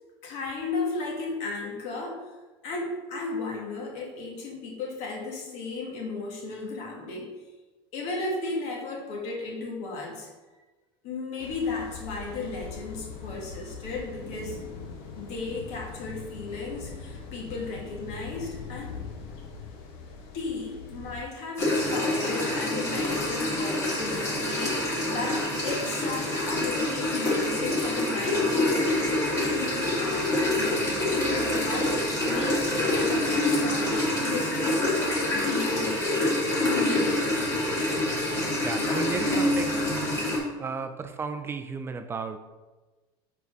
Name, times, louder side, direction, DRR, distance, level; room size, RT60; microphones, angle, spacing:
voice 1, 0.2-2.2 2.6-7.3 7.9-10.3 11.0-14.6 15.2-19.0 20.3-28.8 29.3-36.0 36.6-37.3 38.8-39.2, left 3 dB, 60° left, -1 dB, 1.9 m, -35 dB
sound 1, 11.4-21.2, left 4 dB, 75° left, 1.1 m, -41 dB
sound 2, 21.6-40.4, left 1 dB, 25° left, 2.2 m, -26 dB
voice 2, 38.6-39.9 40.6-42.4, right 5 dB, 20° right, 9 dB, 0.4 m, -33 dB
4.8 x 4.7 x 5.1 m, 1.2 s
supercardioid pair, 135°, 13 cm